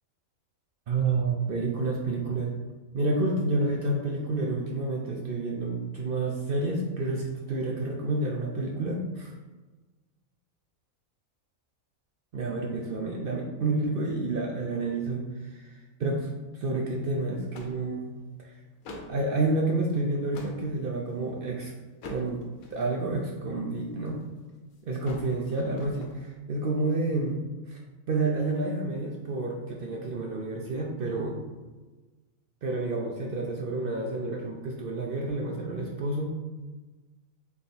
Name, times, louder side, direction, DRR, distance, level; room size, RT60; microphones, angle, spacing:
voice 1, 0.9-2.6 2.9-9.3 12.3-18.5 18.9-21.7 22.0-22.4 22.7-24.2 24.8-27.4 27.7-27.8 28.1-31.4 32.6-36.3, right 2 dB, 60° right, -1 dB, 0.5 m, -29 dB
sound 1, 16.9-17.1 17.5-18.2 18.7-19.2 19.9-20.6 21.2-21.5 22.0-23.0 23.7-24.4 24.7-26.2, left 2 dB, 85° left, 1.1 m, -45 dB
3.5 x 3.4 x 4.2 m, 1.2 s
omnidirectional pair, 1.4 m